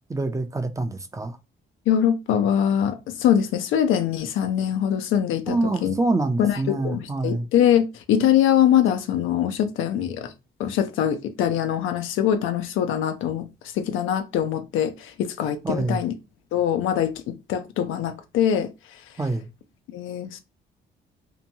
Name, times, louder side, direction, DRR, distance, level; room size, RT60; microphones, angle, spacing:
voice 1, 0.1-1.4 5.5-7.5 15.6-16.0 19.2-19.5, right 2 dB, 15° right, 0.4 m, -26 dB
voice 2, 1.9-5.9 6.4-10.3 10.6-13.5 13.7-16.1 16.5-18.7 19.9-20.4, left 10 dB, 90° left, 0.5 m, -23 dB
2.8 x 2.2 x 2.7 m
cardioid pair, 90°, 20 cm